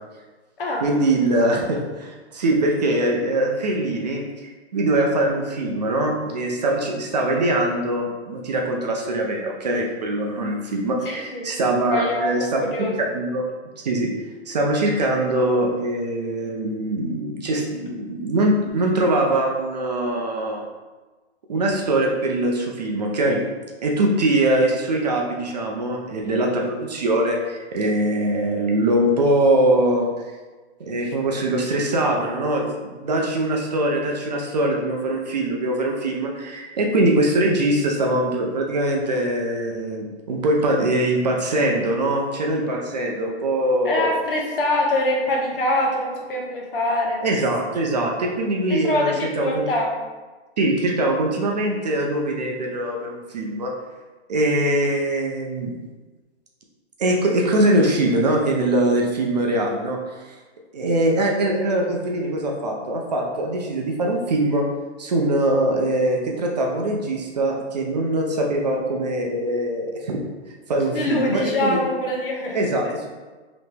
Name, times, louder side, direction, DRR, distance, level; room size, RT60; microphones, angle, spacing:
voice 1, 0.8-12.7 13.0-13.5 13.8-14.1 14.5-20.7 21.5-23.4 23.8-30.1 30.8-44.1 47.2-49.7 50.6-53.7 54.3-55.7 57.0-60.0 60.2-60.4 60.7-64.6 65.0-70.2 70.7-71.8 72.5-73.1, right 1 dB, 40° right, 0 dB, 0.4 m, -22 dB
voice 2, 11.0-11.5 11.9-13.0 43.8-47.2 48.8-49.9 70.9-72.9, left 1 dB, 55° left, -1 dB, 0.9 m, -24 dB
3.1 x 3.0 x 3.2 m, 1.3 s
hypercardioid pair, 155°, 34 cm